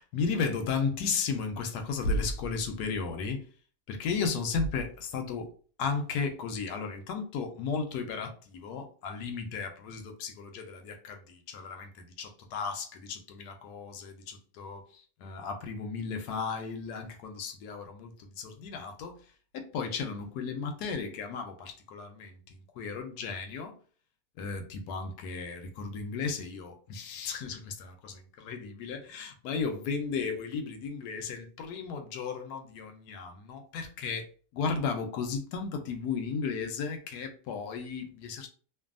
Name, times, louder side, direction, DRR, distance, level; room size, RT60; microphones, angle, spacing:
voice 1, 0.0-3.4 3.9-5.5 5.8-19.2 19.5-23.7 24.4-34.3 34.5-38.5, left 5 dB, 90° left, 1.2 m, -34 dB
2.6 x 2.6 x 2.4 m
omnidirectional pair, 1.7 m